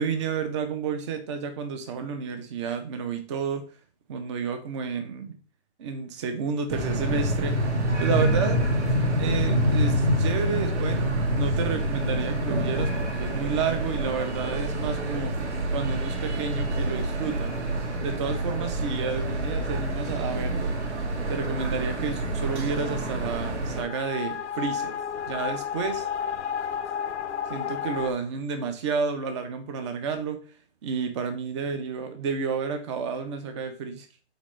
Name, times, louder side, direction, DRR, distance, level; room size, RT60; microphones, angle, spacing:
voice 1, 0.0-3.7 4.1-5.4 5.8-7.6 8.0-8.6 9.2-15.4 15.7-17.6 18.0-20.7 21.3-25.0 25.3-26.1 27.5-30.4 30.8-34.1, right 5 dB, 25° right, 8 dB, 0.6 m, -31 dB
sound 1, 6.7-23.8, right 1 dB, 85° right, 1.4 m, -27 dB
sound 2, 23.8-28.1, left 7 dB, 85° left, 0.5 m, -31 dB
4.0 x 3.8 x 3.1 m, 0.39 s
hypercardioid pair, 145°, 34 cm